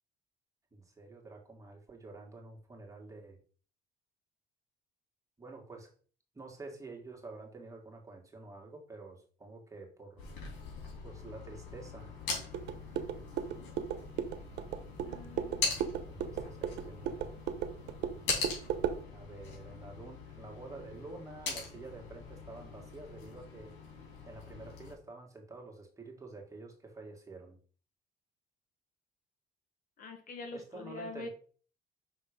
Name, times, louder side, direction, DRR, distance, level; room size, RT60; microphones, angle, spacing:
voice 1, 0.7-3.4 5.4-5.9 6.3-10.3 11.0-12.1 16.0-17.3 19.1-27.6 30.5-31.3, right 3 dB, 20° right, 0 dB, 1.9 m, -49 dB
sound 1, 10.2-25.0, left 4 dB, 90° left, 3.0 m, -42 dB
sound 2, 12.5-19.0, right 9 dB, 85° right, 0.9 m, -37 dB
voice 2, 15.0-15.6 30.0-31.3, left 2 dB, 55° left, 5 dB, 1.5 m, -44 dB
6.1 x 3.7 x 5.1 m, 0.43 s
cardioid pair, 110°, 17 cm